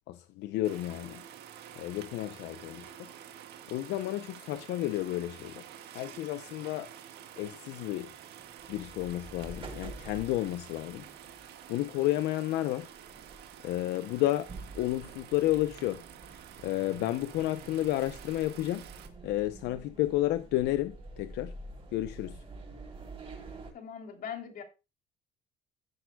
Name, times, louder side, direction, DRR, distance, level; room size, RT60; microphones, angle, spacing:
voice 1, 0.1-1.2 1.8-3.1 3.7-5.7 5.9-6.9 7.4-8.1 8.7-11.0 11.7-12.9 13.6-16.0 16.6-18.8 19.2-21.5 21.9-22.4, left 15 dB, 85° left, 0.7 m, -31 dB
sound 1, 0.6-19.1, right 10 dB, 75° right, 1.7 m, -49 dB
sound 2, 8.0-23.7, right 3 dB, 30° right, 5.9 m, -48 dB
voice 2, 23.7-24.6, left 8 dB, 60° left, 3.1 m, -40 dB
16.5 x 8.1 x 2.3 m
cardioid pair, 110°, 17 cm